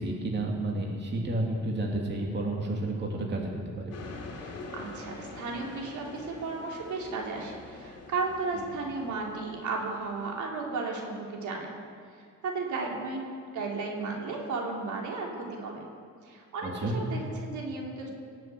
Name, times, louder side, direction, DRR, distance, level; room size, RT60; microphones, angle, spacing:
voice 1, 0.0-4.0 16.6-16.9, right 2 dB, 35° right, -1 dB, 2.7 m, -31 dB
sound 1, 3.9-10.4, left 3 dB, 55° left, 2.9 m, -45 dB
voice 2, 4.4-11.8 12.2-15.9 16.2-18.1, right 3 dB, 75° right, -1 dB, 3.4 m, -34 dB
18.0 x 7.6 x 8.3 m, 2.1 s
cardioid pair, 90°, 30 cm